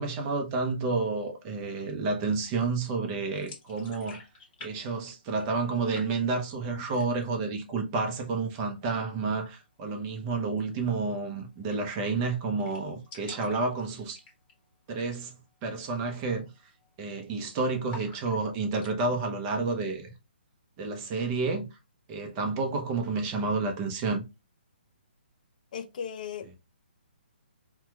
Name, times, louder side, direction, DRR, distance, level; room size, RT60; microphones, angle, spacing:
voice 1, 0.0-4.2 4.6-14.2 14.9-15.3 15.6-16.5 17.0-20.1 20.8-21.7 22.1-24.2, right 3 dB, 30° right, 0.7 m, -30 dB
sound 1, 3.4-4.7 5.0-5.7 5.9-6.5 6.8-7.4 7.7-7.8 8.1-8.8 10.5-10.6 10.9-11.0 11.3-11.4 11.7-12.1 12.3-12.4 12.6-14.7 15.0-15.3 15.6-15.7 16.3-16.5 16.8-17.4 17.9-18.9, left 3 dB, 25° left, 1.2 m, -48 dB
voice 2, 25.7-26.5, left 7 dB, 50° left, 0.4 m, -37 dB
4.3 x 2.3 x 2.3 m
hypercardioid pair, 145°, 6 cm